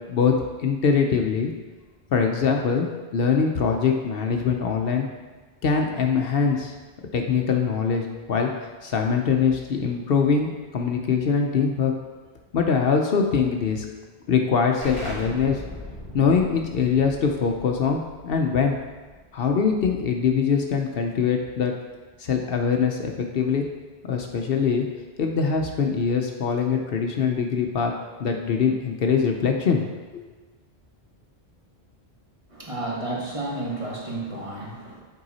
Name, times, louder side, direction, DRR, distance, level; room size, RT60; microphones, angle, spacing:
voice 1, 0.6-1.5 2.1-2.9 3.1-5.1 5.6-6.7 7.1-8.5 8.8-11.9 12.5-13.8 14.3-15.6 16.1-18.8 19.3-21.7 22.2-23.7 24.1-24.8 25.2-27.9 28.2-29.8 30.1-30.3, left 6 dB, 65° left, 3 dB, 0.8 m, -23 dB
Explosion, 14.8-20.2, equal, 50° right, 2.5 m, -40 dB
voice 2, 32.5-35.0, right 2 dB, 30° right, -3 dB, 1.3 m, -31 dB
7.7 x 4.7 x 4.1 m, 1.3 s
omnidirectional pair, 1.1 m